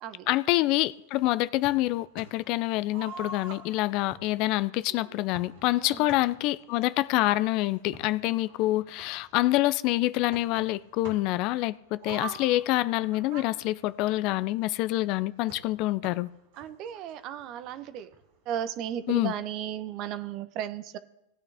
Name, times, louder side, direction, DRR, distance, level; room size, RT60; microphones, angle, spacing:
voice 1, 0.3-16.3 19.1-19.3, left 17 dB, 50° left, 0.4 m, -26 dB
sound 1, 1.6-2.5 2.9-6.7 7.4-7.5 7.8-9.7 10.3-11.5 11.9-14.7 15.5-17.5 17.8-17.9 18.1-18.2 18.9-19.0, right 4 dB, 60° right, 2.7 m, -45 dB
voice 2, 16.6-18.1 18.5-21.0, right 10 dB, 45° right, 0.9 m, -35 dB
17.5 x 9.0 x 3.5 m
hypercardioid pair, 100°, 0 cm